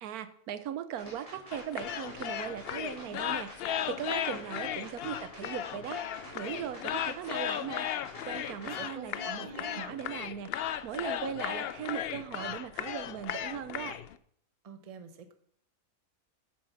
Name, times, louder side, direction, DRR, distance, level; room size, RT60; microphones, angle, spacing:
voice 1, 0.0-7.9 8.3-14.0, right 9 dB, 85° right, 13 dB, 1.2 m, -39 dB
sound 1, 1.0-8.8, equal, 25° left, 3.7 m, -49 dB
sound 2, 1.5-14.2, left 10 dB, 70° left, 0.5 m, -36 dB
voice 2, 8.6-9.8 14.6-15.3, right 5 dB, 30° right, 9 dB, 0.7 m, -46 dB
8.4 x 7.4 x 5.9 m, 0.63 s
omnidirectional pair, 1.5 m